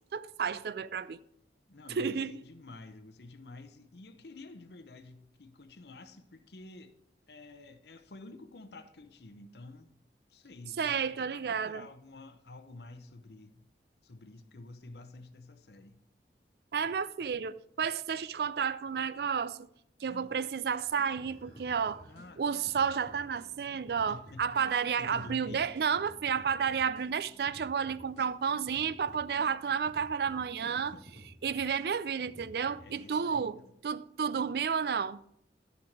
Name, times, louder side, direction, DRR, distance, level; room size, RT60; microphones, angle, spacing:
voice 1, 0.1-1.2 1.9-2.3 10.8-11.9 16.7-19.6 20.0-22.0 22.4-30.9 31.4-33.6 33.8-35.2, right 6 dB, 60° right, 0.4 m, -31 dB
voice 2, 1.7-7.0 7.3-9.9 10.3-13.7 14.0-16.0 20.1-20.3 22.1-22.6 23.7-24.6 25.0-25.7 28.2-28.3 28.5-28.7 30.6-31.0 32.8-33.7, left 2 dB, 70° left, 0.8 m, -50 dB
sound 1, 20.7-33.0, equal, 80° right, 3.4 m, -54 dB
11.5 x 6.9 x 4.6 m
head